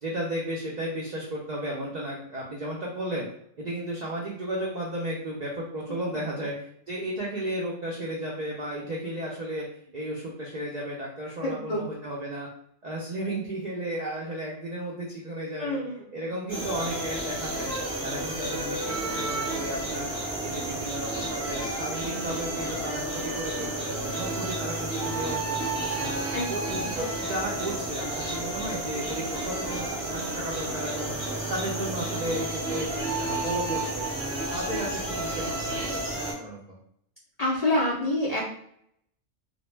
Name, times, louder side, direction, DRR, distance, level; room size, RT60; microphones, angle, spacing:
voice 1, 0.0-3.3 3.6-9.6 9.9-12.5 12.8-15.8 16.1-17.7 18.0-20.1 20.4-26.1 26.5-31.1 31.5-34.1 34.5-36.0 36.3-36.6, right 1 dB, 75° right, -4 dB, 0.4 m, -34 dB
voice 2, 11.4-11.8 15.6-16.2 26.3-27.0 37.4-38.4, left 1 dB, 85° left, -4 dB, 0.3 m, -28 dB
sound 1, 16.5-36.3, right 2 dB, 30° right, 0.7 m, -31 dB
2.1 x 2.0 x 3.1 m, 0.69 s
omnidirectional pair, 1.3 m